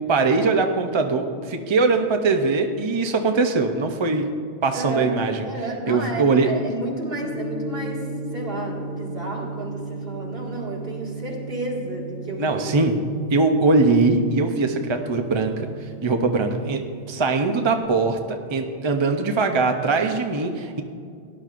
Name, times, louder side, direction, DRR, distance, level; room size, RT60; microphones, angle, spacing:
voice 1, 0.1-4.3 4.6-5.5 5.9-6.5 12.4-12.9 13.3-15.7 16.0-16.8 17.1-20.8, right 3 dB, 35° right, 5 dB, 0.5 m, -21 dB
voice 2, 4.7-5.1 5.5-12.9, right 2 dB, 60° right, -3 dB, 2.1 m, -32 dB
Gong, 7.2-17.8, right 3 dB, 90° right, 3.2 m, -35 dB
17.0 x 10.5 x 2.5 m, 2.3 s
omnidirectional pair, 1.1 m